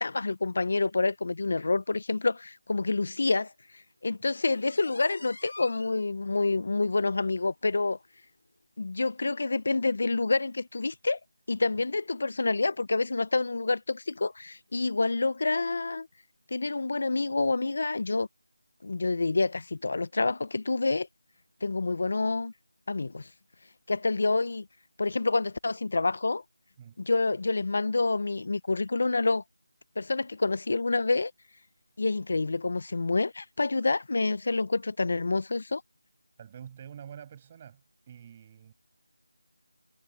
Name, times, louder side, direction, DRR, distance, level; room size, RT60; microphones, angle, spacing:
voice 1, 0.0-3.5 4.0-8.0 8.8-11.2 11.5-16.1 16.5-18.3 18.8-21.1 21.6-22.5 22.9-23.3 23.9-24.7 25.0-26.4 27.0-29.4 30.0-31.3 32.0-35.8, left 3 dB, 45° left, 0.7 m, -28 dB
sound 1, 4.3-6.0 6.5-6.6 7.0-7.1 7.5-7.6 8.5-8.6, left 2 dB, 65° left, 5.3 m, -46 dB
voice 2, 36.4-38.7, right 8 dB, 15° right, 6.5 m, -47 dB
figure-of-eight pair, 175°, 0 cm